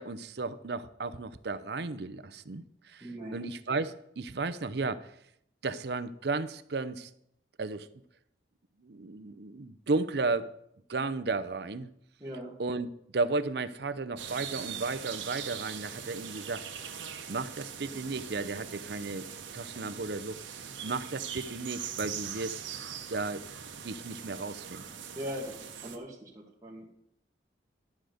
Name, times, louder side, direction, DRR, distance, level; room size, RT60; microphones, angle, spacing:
voice 1, 0.0-5.2 5.6-7.1 7.6-7.9 8.8-10.5 10.9-11.9 12.6-16.7 17.3-19.3 19.5-20.4 20.8-22.6 22.9-23.5 23.8-24.8, right 3 dB, 60° right, 12 dB, 0.6 m, -34 dB
voice 2, 3.0-3.4 12.2-12.6 25.1-27.0, equal, 15° right, -3 dB, 1.7 m, -40 dB
sound 1, 14.2-26.0, right 8 dB, 80° right, 1.2 m, -41 dB
12.5 x 5.0 x 7.8 m, 0.73 s
head